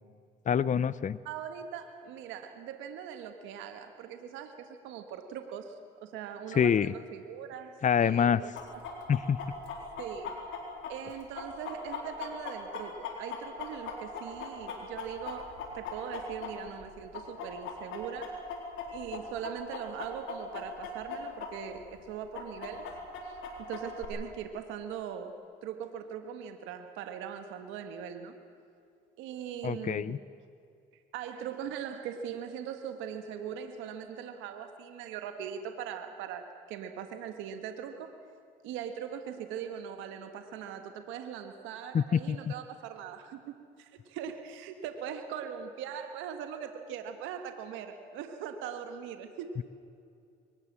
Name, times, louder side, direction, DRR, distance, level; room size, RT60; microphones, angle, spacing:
voice 1, 0.5-1.2 6.6-6.9 7.8-8.4 9.1-9.4 29.6-30.2 41.9-42.5 49.6-49.7, left 7 dB, 40° left, 18 dB, 0.7 m, -26 dB
voice 2, 1.2-7.7 8.0-8.8 10.0-10.3 10.9-18.4 18.9-22.9 23.2-28.3 29.2-30.2 31.1-38.1 38.6-49.5, right 8 dB, 85° right, 7 dB, 1.6 m, -41 dB
Chicken rooster, 8.6-16.9 17.1-21.5 21.8-21.9 22.3-24.1, left 6 dB, 80° left, 4.0 m, -39 dB
23.5 x 19.5 x 7.5 m, 2.4 s
supercardioid pair, 65°, 20 cm